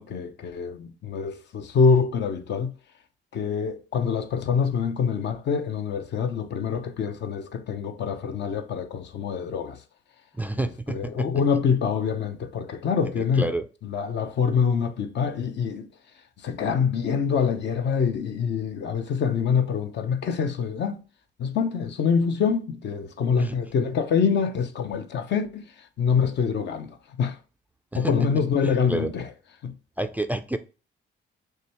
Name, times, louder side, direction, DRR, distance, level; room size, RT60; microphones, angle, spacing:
voice 1, 0.0-2.7 3.3-9.8 10.6-13.5 13.8-15.9 16.4-21.0 21.4-27.4 27.9-29.3 29.6-29.8, left 6 dB, 60° left, 0.7 m, -25 dB
voice 2, 10.4-11.3 13.2-13.6 23.3-23.5 27.9-28.1 28.6-29.1 30.0-30.6, right 2 dB, 10° right, 0.3 m, -29 dB
6.3 x 2.3 x 2.9 m
cardioid pair, 90°, 20 cm